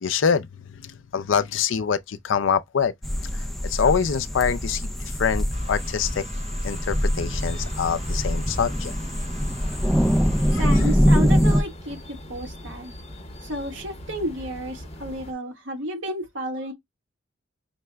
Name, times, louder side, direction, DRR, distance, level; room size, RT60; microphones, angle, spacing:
voice 1, 0.0-2.9 3.6-6.2 6.6-9.0 10.5-10.9, left 6 dB, 65° left, 0.4 m, -25 dB
sound 1, 3.0-11.6, equal, ahead, 0.4 m, -23 dB
sound 2, 5.5-10.7, equal, 35° right, 0.8 m, -42 dB
sound 3, 7.3-15.3, left 1 dB, 30° left, 0.9 m, -41 dB
voice 2, 10.5-12.9 13.4-16.7, right 1 dB, 65° right, 1.4 m, -32 dB
5.6 x 2.1 x 3.3 m
head